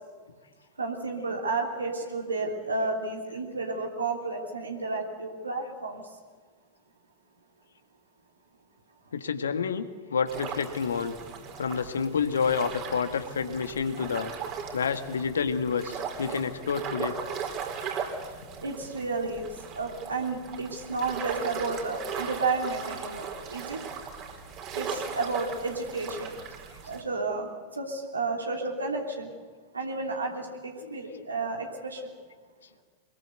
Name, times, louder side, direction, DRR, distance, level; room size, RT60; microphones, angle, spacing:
voice 1, 0.8-6.0 18.6-19.5 19.7-23.8 24.7-26.3 26.9-27.5 27.8-29.3 29.7-32.0, right 3 dB, 75° right, 1 dB, 3.1 m, -31 dB
voice 2, 9.1-11.1 11.6-14.3 14.7-17.2 30.8-31.3, left 6 dB, 70° left, 9 dB, 1.7 m, -29 dB
sound 1, 10.3-27.0, right 6 dB, 35° right, 4.3 m, -38 dB
25.0 x 21.5 x 8.1 m, 1.4 s
figure-of-eight pair, 90°, 0 cm